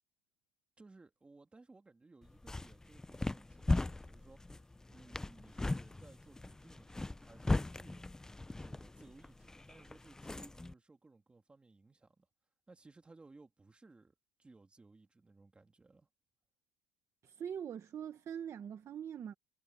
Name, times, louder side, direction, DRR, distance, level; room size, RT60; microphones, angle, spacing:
voice 1, 0.8-8.1 8.6-12.3 12.7-16.1, right 3 dB, 10° right, 2.5 m, -61 dB
sound 1, 2.2-10.7, left 2 dB, 5° left, 0.3 m, -38 dB
voice 2, 17.2-19.3, right 8 dB, 30° right, 1.0 m, -43 dB
cardioid pair, 160°, 10 cm